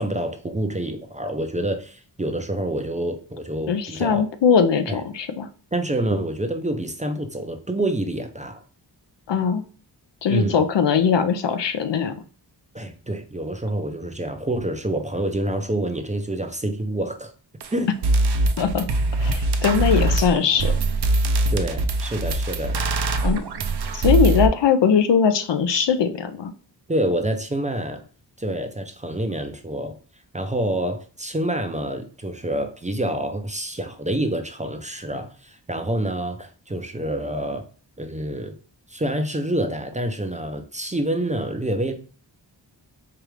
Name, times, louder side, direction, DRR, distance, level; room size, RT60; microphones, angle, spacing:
voice 1, 0.0-4.2 4.9-5.0 5.7-8.6 10.3-10.6 12.7-17.3 17.7-17.9 21.5-22.8 26.9-28.0 28.4-30.0 30.3-37.6 38.0-38.5 38.9-41.9, right 1 dB, 15° right, 5 dB, 0.5 m, -27 dB
voice 2, 3.7-5.5 9.3-9.6 10.2-12.1 18.6-18.9 19.2-20.7 23.2-23.4 23.9-26.5, left 6 dB, 70° left, 10 dB, 0.6 m, -20 dB
sound 1, 17.6-17.7 18.0-24.5, right 2 dB, 60° right, 0.6 m, -22 dB
4.7 x 2.5 x 3.1 m, 0.40 s
wide cardioid pair, 90°, 45 cm